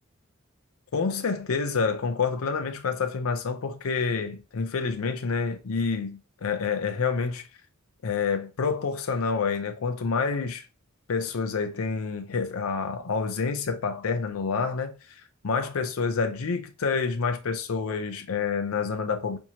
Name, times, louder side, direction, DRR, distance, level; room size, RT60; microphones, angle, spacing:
voice 1, 0.9-7.5 8.0-10.7 11.1-19.4, left 5 dB, 80° left, 0.5 m, -28 dB
4.5 x 2.7 x 2.8 m
head